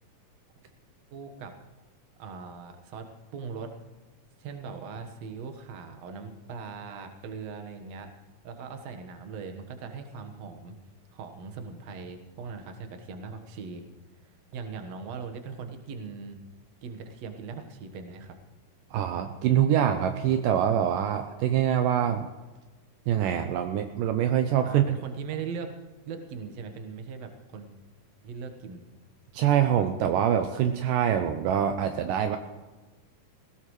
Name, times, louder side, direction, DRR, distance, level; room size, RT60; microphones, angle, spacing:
voice 1, 1.1-1.5 2.2-3.1 3.3-3.7 4.4-8.1 8.4-10.8 11.1-13.8 14.2-16.4 16.8-18.4 24.6-25.7 26.1-27.7 28.2-28.8, right 5 dB, 55° right, 6 dB, 2.3 m, -40 dB
voice 2, 18.9-22.3 23.1-24.8 29.3-32.4, right 9 dB, 75° right, 7 dB, 2.3 m, -24 dB
20.0 x 16.5 x 3.2 m, 1.2 s
omnidirectional pair, 4.0 m